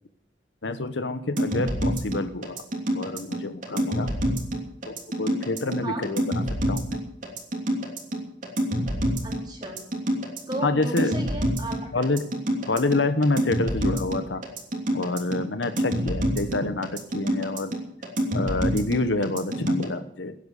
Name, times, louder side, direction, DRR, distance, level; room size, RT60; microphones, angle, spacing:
voice 1, 0.6-2.6 2.9-4.1 4.9-7.0 10.6-11.1 11.9-12.2 12.7-14.4 14.9-17.7 18.3-20.3, left 2 dB, 75° left, 11 dB, 1.2 m, -27 dB
sound 1, 1.4-19.9, equal, 45° right, 3.1 m, -27 dB
voice 2, 9.2-9.8 10.5-11.8, right 1 dB, 25° right, 0 dB, 3.9 m, -34 dB
16.5 x 10.5 x 6.6 m, 0.74 s
head